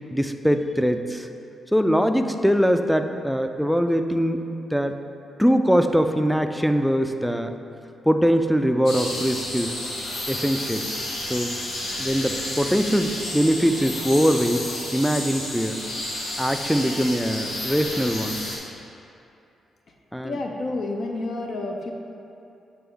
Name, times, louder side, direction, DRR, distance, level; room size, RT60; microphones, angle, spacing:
voice 1, 0.1-1.3 1.7-4.4 4.7-5.0 5.4-7.5 8.1-9.8 10.3-10.9 11.3-11.5 12.0-15.8 16.4-18.4 20.1-20.4, equal, ahead, 7 dB, 0.3 m, -22 dB
sound 1, 8.9-18.6, left 1 dB, 80° left, 1.1 m, -31 dB
voice 2, 20.2-21.9, left 2 dB, 60° left, 2 dB, 0.5 m, -29 dB
8.2 x 3.4 x 3.6 m, 2.7 s
cardioid pair, 75°, 0 cm